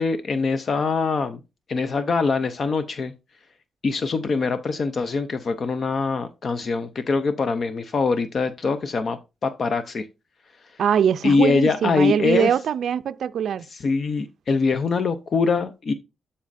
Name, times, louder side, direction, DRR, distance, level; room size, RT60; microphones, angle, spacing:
voice 1, 0.0-1.4 1.7-3.1 3.8-10.1 11.2-12.5 13.7-15.9, left 4 dB, 50° left, 0.6 m, -23 dB
voice 2, 10.8-13.7, right 8 dB, 70° right, 0.4 m, -22 dB
12.0 x 4.2 x 2.6 m
cardioid pair, 85°, 0 cm